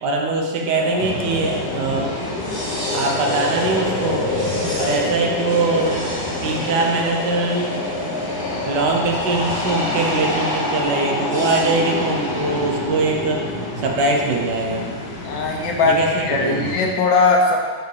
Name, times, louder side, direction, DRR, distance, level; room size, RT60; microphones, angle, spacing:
voice 1, 0.0-2.2 2.9-4.3 4.8-6.1 6.4-8.2 8.6-13.4 13.8-14.9 15.8-16.6, right 3 dB, 70° right, 0 dB, 1.4 m, -22 dB
sound 1, 0.7-15.6, left 3 dB, 65° left, 1.1 m, -28 dB
sound 2, 1.0-16.8, equal, 10° left, 1.8 m, -30 dB
voice 2, 15.2-17.6, left 3 dB, 85° left, 0 dB, 1.6 m, -19 dB
4.8 x 4.8 x 4.8 m, 1.5 s
omnidirectional pair, 2.0 m